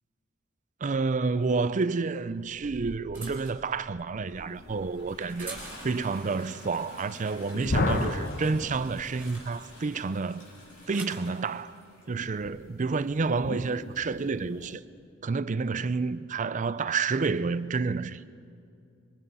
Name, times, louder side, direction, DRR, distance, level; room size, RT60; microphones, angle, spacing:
voice 1, 0.8-10.5 10.9-11.8 12.1-14.8 15.2-18.2, right 4 dB, 40° right, 0.5 m, -29 dB
sound 1, 2.2-6.2 6.6-7.0 7.2-9.8 10.6-11.3 12.2-12.5, right 2 dB, 10° right, 4.6 m, -47 dB
Toilet flush, 4.1-12.5 13.5-13.6, left 1 dB, 65° left, 6.0 m, -49 dB
sound 2, 7.5-9.5 12.4-14.8, left 2 dB, 50° left, 1.0 m, -33 dB
25.5 x 23.0 x 5.5 m
head